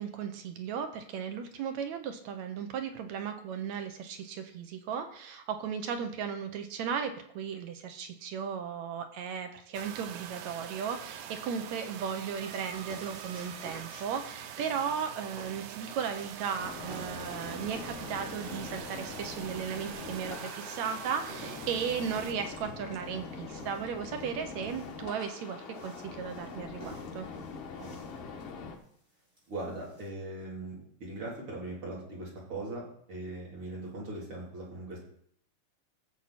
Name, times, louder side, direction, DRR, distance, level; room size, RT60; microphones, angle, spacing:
voice 1, 0.0-27.3, right 7 dB, 75° right, 7 dB, 2.2 m, -36 dB
sound 1, 9.7-22.3, right 9 dB, 90° right, 2.2 m, -44 dB
sound 2, 12.1-30.1, right 1 dB, 15° right, 4.7 m, -53 dB
sound 3, 16.6-28.8, left 4 dB, 85° left, 2.8 m, -43 dB
voice 2, 29.5-30.8 31.0-32.8 33.1-35.0, right 2 dB, 45° right, -4 dB, 4.2 m, -39 dB
15.5 x 7.3 x 4.2 m, 0.67 s
omnidirectional pair, 3.4 m